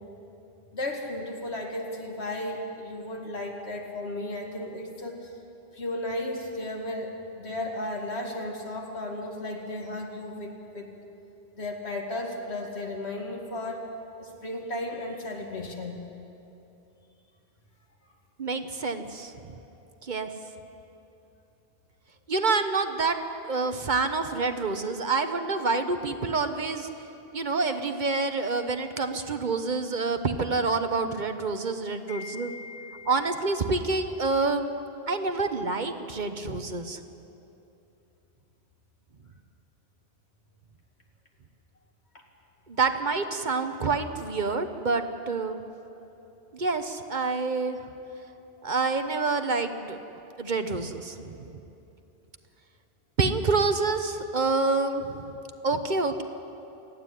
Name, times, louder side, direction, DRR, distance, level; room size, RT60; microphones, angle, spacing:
voice 1, 0.7-5.3 5.7-10.9 11.6-13.8 14.2-16.0 32.1-33.4, left 1 dB, 85° left, 1 dB, 2.5 m, -35 dB
voice 2, 18.4-19.3 20.0-20.3 22.3-23.2 23.5-26.9 27.3-32.5 33.1-34.7 35.1-37.0 42.7-45.6 46.5-47.8 48.6-50.0 50.4-51.6 53.2-55.3 55.6-56.2, right 3 dB, 50° right, 8 dB, 1.1 m, -27 dB
28.0 x 9.5 x 9.9 m, 2.9 s
omnidirectional pair, 1.1 m